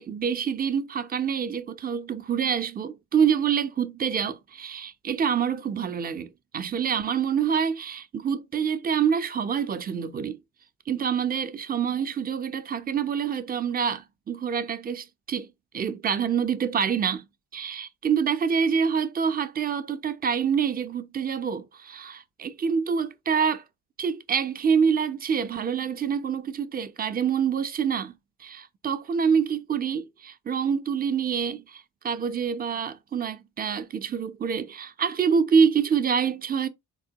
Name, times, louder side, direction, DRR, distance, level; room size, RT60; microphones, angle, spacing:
voice 1, 0.0-10.4 10.9-15.5 15.7-17.2 17.5-23.6 24.0-28.1 28.4-36.7, right 7 dB, 25° right, 0.4 m, -26 dB
3.5 x 2.2 x 2.7 m
supercardioid pair, 60°, 41 cm